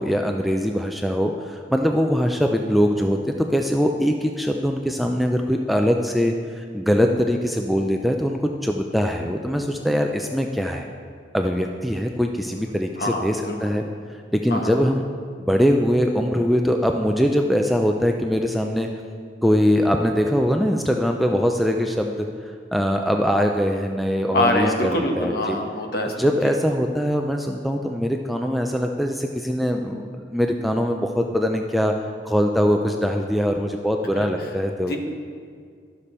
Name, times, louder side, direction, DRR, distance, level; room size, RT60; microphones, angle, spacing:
voice 1, 0.0-10.9 11.3-13.8 14.3-15.0 15.4-18.9 19.4-22.3 22.7-25.6 26.2-32.0 32.2-34.9, equal, ahead, 3 dB, 0.3 m, -22 dB
voice 2, 13.0-13.7 14.5-14.8 24.3-26.2 26.4-26.5 34.1-34.5 34.8-35.0, left 1 dB, 55° left, 3 dB, 1.0 m, -25 dB
11.5 x 6.7 x 4.3 m, 2.1 s
head